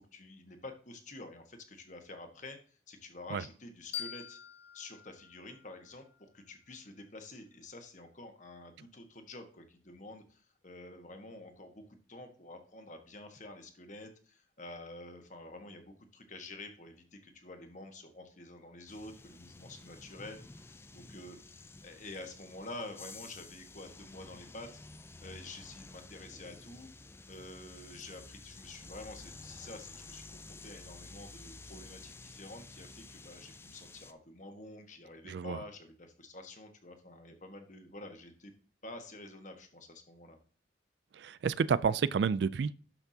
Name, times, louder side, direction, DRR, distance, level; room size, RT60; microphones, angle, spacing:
voice 1, 0.0-4.4 4.7-24.8 25.2-26.9 27.3-38.5 38.8-40.4, left 2 dB, 40° left, 1.4 m, -49 dB
sound 1, 3.9-6.7, left 10 dB, 70° left, 1.3 m, -46 dB
sound 2, 18.9-34.1, left 3 dB, 15° left, 0.3 m, -51 dB
voice 2, 35.2-35.6 41.1-42.7, right 6 dB, 65° right, 0.3 m, -30 dB
12.0 x 5.8 x 2.8 m
head